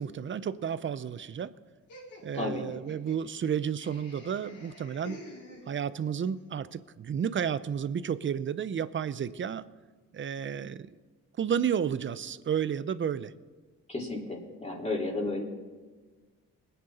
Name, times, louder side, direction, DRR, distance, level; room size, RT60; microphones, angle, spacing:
voice 1, 0.0-1.5 2.2-5.2 5.7-9.7 10.1-10.9 11.4-13.3, right 8 dB, 40° right, 15 dB, 0.7 m, -32 dB
Laughter, 1.9-6.1, left 1 dB, 75° left, 5.0 m, -49 dB
voice 2, 2.3-2.6 13.9-15.4, left 2 dB, 20° left, -2 dB, 3.4 m, -33 dB
21.0 x 9.4 x 4.3 m, 1.4 s
cardioid pair, 90°, 30 cm